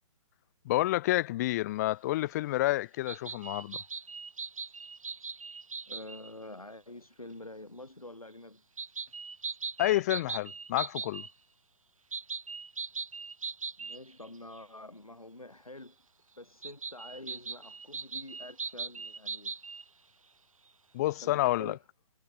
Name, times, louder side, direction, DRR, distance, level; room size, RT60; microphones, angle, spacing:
voice 1, 0.6-3.8 9.8-11.2 20.9-21.8, left 16 dB, 30° left, 1.0 m, -29 dB
sound 1, 3.1-6.3 8.8-11.3 12.1-14.3 14.5-14.6 16.6-19.8, right 4 dB, 70° right, 2.2 m, -39 dB
voice 2, 5.9-8.6 13.8-16.0 16.4-19.5 21.2-21.8, left 2 dB, 85° left, 4.1 m, -47 dB
figure-of-eight pair, 130°, 18 cm